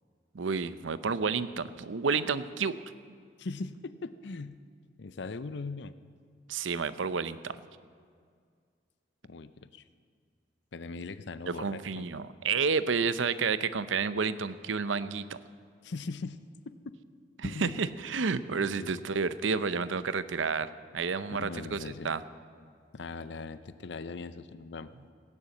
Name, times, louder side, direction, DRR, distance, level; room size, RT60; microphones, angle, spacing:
voice 1, 0.3-2.8 6.5-7.6 11.6-15.4 17.4-22.2, right 5 dB, 85° right, 14 dB, 0.6 m, -30 dB
voice 2, 3.4-4.6 5.0-5.9 9.2-9.8 10.7-12.1 15.8-16.4 16.7-16.8 17.4-17.8 18.8-19.0 21.3-22.1 22.9-24.9, left 3 dB, 70° left, 13 dB, 0.6 m, -40 dB
17.0 x 10.0 x 7.8 m, 2.1 s
head